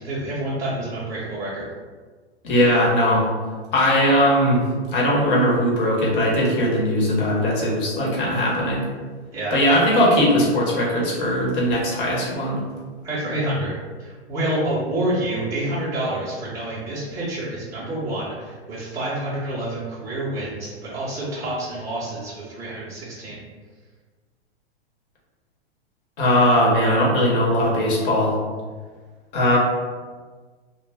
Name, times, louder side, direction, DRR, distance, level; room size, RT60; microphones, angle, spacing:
voice 1, 0.0-1.7 9.3-9.6 13.0-13.7 14.0-23.4, right 1 dB, 10° right, -9 dB, 0.6 m, -28 dB
voice 2, 2.4-3.2 3.7-8.8 9.5-12.6 26.2-28.3 29.3-29.6, equal, 50° left, -4 dB, 1.0 m, -19 dB
2.2 x 2.0 x 3.3 m, 1.5 s
hypercardioid pair, 120°, 33 cm